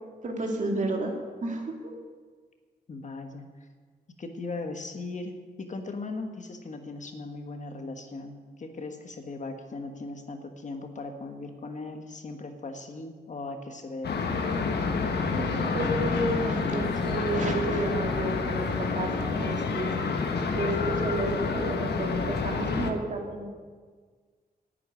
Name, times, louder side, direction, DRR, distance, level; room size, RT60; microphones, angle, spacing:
voice 1, 0.2-2.0 15.2-19.9 20.6-23.5, right 2 dB, 50° right, 1 dB, 2.4 m, -31 dB
voice 2, 2.9-3.5 4.2-14.2, left 3 dB, 45° left, 5 dB, 1.4 m, -38 dB
sound 1, 14.0-22.9, left 4 dB, 90° left, 1.3 m, -28 dB
10.5 x 8.4 x 9.8 m, 1.5 s
wide cardioid pair, 125°, 17 cm